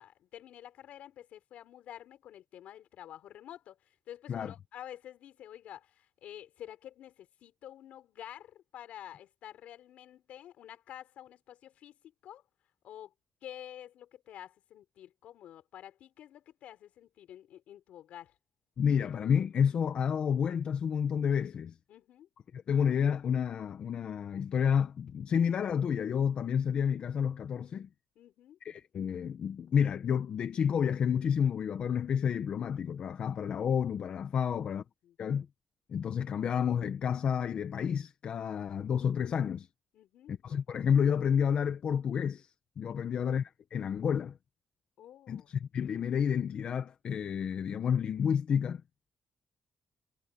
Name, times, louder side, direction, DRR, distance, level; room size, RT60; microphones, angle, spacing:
voice 1, 0.0-12.0 12.2-12.4 12.8-13.1 13.4-18.4 21.9-22.3 28.2-28.6 34.5-35.2 39.9-40.4 43.0-43.3 45.0-45.5, left 11 dB, 80° left, 4.3 m, -49 dB
voice 2, 18.8-21.8 22.5-27.9 28.6-34.8 35.2-35.5 35.9-39.7 40.3-44.4 45.3-48.8, left 7 dB, 50° left, 0.9 m, -30 dB
cardioid pair, 140°, 2 cm